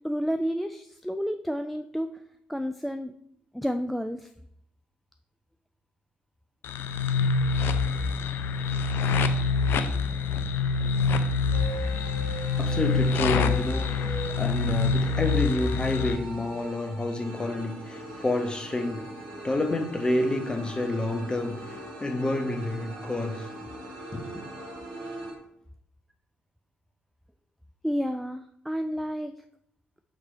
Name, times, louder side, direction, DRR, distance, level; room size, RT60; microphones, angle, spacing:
voice 1, 0.0-2.2 2.5-3.1 3.5-4.3 27.8-29.3, equal, ahead, 0.4 m, -30 dB
sound 1, 6.6-16.2, left 4 dB, 50° left, 0.5 m, -26 dB
sound 2, 11.5-25.3, right 1 dB, 65° right, 1.7 m, -40 dB
voice 2, 12.6-23.7 24.1-24.2, left 2 dB, 20° left, 1.0 m, -29 dB
5.8 x 4.8 x 4.0 m
figure-of-eight pair, 45°, 5 cm